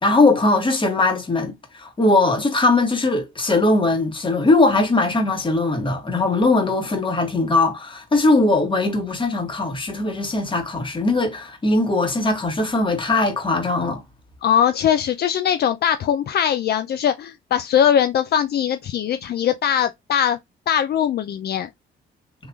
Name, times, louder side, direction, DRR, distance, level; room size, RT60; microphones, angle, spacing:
voice 1, 0.0-14.0, left 2 dB, 25° left, 1.6 m, -20 dB
voice 2, 14.4-20.4 20.7-21.7, left 9 dB, 55° left, 0.4 m, -20 dB
3.9 x 2.9 x 2.4 m
cardioid pair, 90°, 20 cm